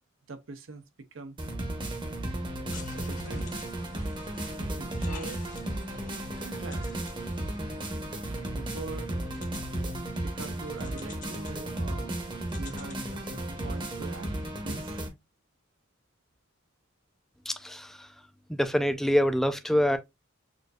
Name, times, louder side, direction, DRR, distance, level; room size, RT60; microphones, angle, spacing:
voice 1, 0.3-1.4 2.9-3.6 4.7-5.4 6.4-7.3 8.2-9.1 10.2-14.4 14.6-15.0, right 3 dB, 75° right, 0.7 m, -43 dB
sound 1, 1.4-15.1, right 1 dB, 25° right, 0.8 m, -34 dB
sound 2, 2.7-14.5, left 3 dB, 40° left, 0.9 m, -49 dB
voice 2, 17.5-18.1 18.5-20.0, equal, ahead, 0.4 m, -26 dB
6.3 x 2.6 x 2.3 m
head